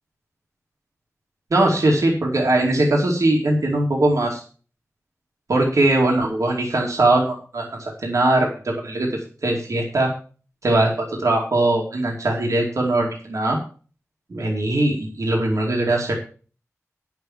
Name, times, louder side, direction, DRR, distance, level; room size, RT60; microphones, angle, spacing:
voice 1, 1.5-4.4 5.5-9.1 9.4-10.1 10.6-13.6 14.3-16.1, right 2 dB, 75° right, -1 dB, 2.6 m, -20 dB
9.3 x 7.0 x 7.4 m, 0.40 s
wide cardioid pair, 70°, 5 cm